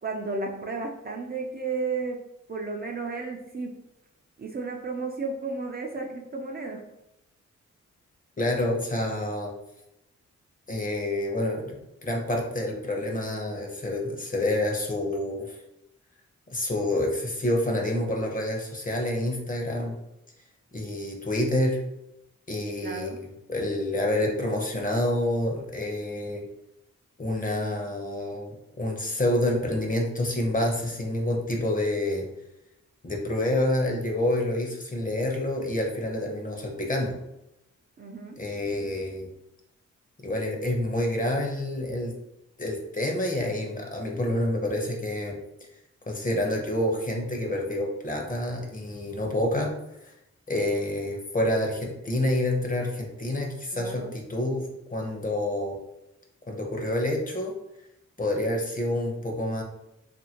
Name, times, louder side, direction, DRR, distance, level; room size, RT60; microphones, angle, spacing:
voice 1, 0.0-2.2 2.5-3.7 4.4-6.8 22.8-23.2 38.0-38.4 53.7-54.1, right 3 dB, 35° right, 1 dB, 0.4 m, -33 dB
voice 2, 8.4-9.5 10.7-15.6 16.5-20.0 20.7-21.8 22.5-26.4 27.2-32.3 33.0-37.2 38.4-39.3 40.2-42.1 42.6-45.4 46.1-49.7 50.5-55.8 56.5-57.5 58.2-59.6, left 1 dB, 30° left, 1 dB, 0.7 m, -28 dB
2.7 x 2.6 x 2.9 m, 0.86 s
cardioid pair, 65°, 30 cm